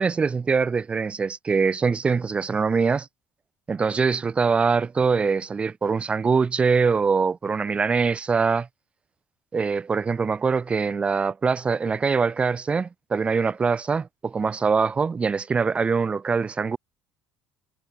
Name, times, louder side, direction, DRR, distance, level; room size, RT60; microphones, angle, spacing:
voice 1, 0.0-3.1 3.7-8.7 9.5-16.8, right 5 dB, 20° right, 0.3 m, -23 dB
figure-of-eight pair, 55°, 6 cm